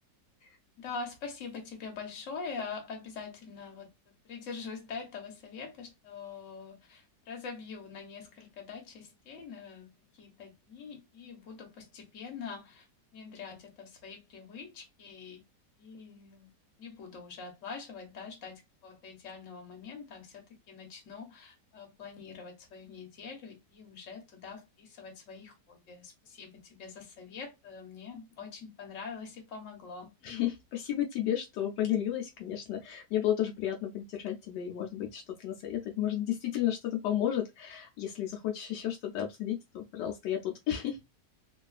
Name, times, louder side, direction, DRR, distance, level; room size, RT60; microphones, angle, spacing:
voice 1, 0.8-12.9 13.1-15.4 15.8-16.5 16.8-30.1, left 5 dB, 50° left, 1.2 m, -44 dB
voice 2, 30.2-41.0, left 11 dB, 80° left, 1.2 m, -32 dB
3.1 x 2.3 x 2.3 m
omnidirectional pair, 1.8 m